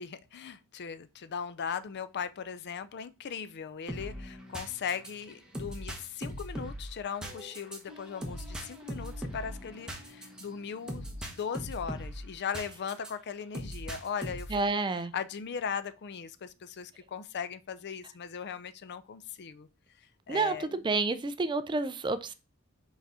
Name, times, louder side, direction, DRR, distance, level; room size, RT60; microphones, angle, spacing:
voice 1, 0.0-19.7 20.3-20.7, left 7 dB, 50° left, 0.4 m, -38 dB
sound 1, 3.9-13.1 13.5-14.7, equal, 5° right, 1.2 m, -40 dB
voice 2, 14.5-15.1 20.3-22.3, right 3 dB, 20° right, 0.4 m, -29 dB
5.0 x 4.0 x 4.8 m
head